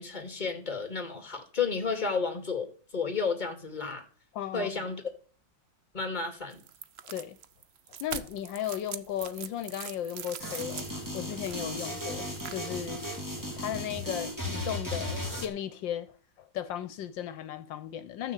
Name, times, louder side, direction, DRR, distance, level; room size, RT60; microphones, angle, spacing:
voice 1, 0.0-4.0 4.5-5.0 5.9-6.6, left 5 dB, 25° left, 2.5 m, -32 dB
voice 2, 4.3-4.9 7.0-7.4 8.0-13.0 13.6-18.3, left 10 dB, 80° left, 1.4 m, -36 dB
sound 1, 6.5-12.5, right 8 dB, 70° right, 0.6 m, -43 dB
sound 2, 10.4-15.4, left 1 dB, 10° right, 2.1 m, -36 dB
13.5 x 6.4 x 8.2 m
omnidirectional pair, 2.0 m